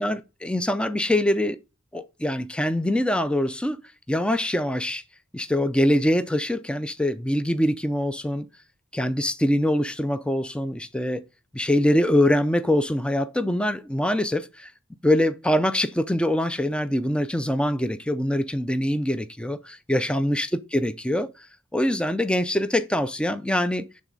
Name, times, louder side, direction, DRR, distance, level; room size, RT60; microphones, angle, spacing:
voice 1, 0.0-1.6 1.9-3.8 4.1-5.0 5.3-8.5 8.9-11.2 11.5-14.7 15.0-21.5 21.7-23.8, left 1 dB, 5° left, 0.4 m, -24 dB
8.5 x 4.1 x 5.2 m
head